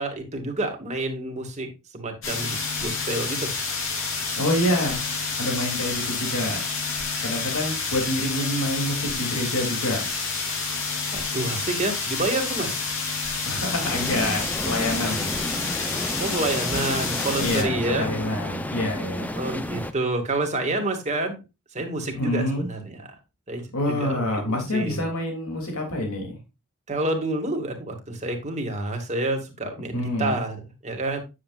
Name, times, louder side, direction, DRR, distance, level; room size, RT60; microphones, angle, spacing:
voice 1, 0.0-1.7 1.9-3.5 11.1-12.7 16.2-18.1 19.3-21.4 21.7-23.1 23.5-25.0 26.9-31.2, right 2 dB, 35° right, 3 dB, 2.2 m, -28 dB
sound 1, 2.2-17.6, left 4 dB, 65° left, 3.3 m, -29 dB
voice 2, 4.4-5.0 5.4-6.6 7.2-10.1 13.4-15.3 17.4-19.4 22.2-22.7 23.7-26.4 29.9-30.4, left 1 dB, 90° left, 1 dB, 3.0 m, -27 dB
sound 2, 13.8-19.9, left 1 dB, 10° left, 0.7 m, -31 dB
9.5 x 8.0 x 2.5 m, 0.26 s
head